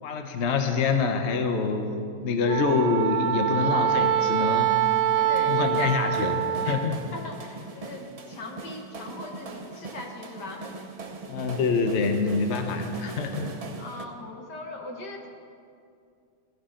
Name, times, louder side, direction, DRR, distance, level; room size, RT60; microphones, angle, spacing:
voice 1, 0.0-4.8 5.4-7.0 11.3-13.6, left 4 dB, 50° left, 5 dB, 1.0 m, -26 dB
Wind instrument woodwind instrument, 2.5-6.9, right 10 dB, 85° right, 1.5 m, -24 dB
voice 2, 5.1-5.6 6.6-6.8 7.1-10.7 13.8-15.3, left 2 dB, 70° left, 2 dB, 2.0 m, -40 dB
sound 1, 5.4-14.1, right 3 dB, 65° right, 0.3 m, -40 dB
15.0 x 14.5 x 3.8 m, 2.4 s
omnidirectional pair, 1.9 m